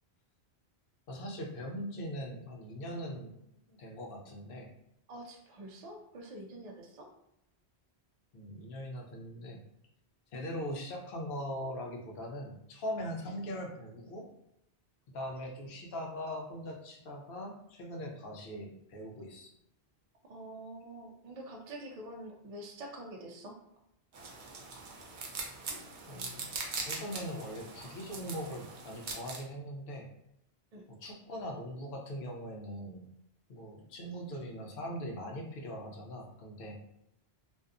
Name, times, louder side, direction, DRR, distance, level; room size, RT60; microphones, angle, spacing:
voice 1, 1.1-3.4 3.7-4.7 8.3-9.6 10.3-14.3 15.1-19.5 26.1-26.5 26.9-30.1 31.0-33.1 33.5-36.8, equal, 65° left, 0 dB, 0.7 m, -41 dB
voice 2, 5.1-7.1 20.2-23.5 30.7-30.8, right 1 dB, 55° right, 0 dB, 0.4 m, -46 dB
sound 1, 24.1-29.4, right 4 dB, 90° right, 0.9 m, -42 dB
2.6 x 2.2 x 2.4 m, 0.81 s
omnidirectional pair, 1.1 m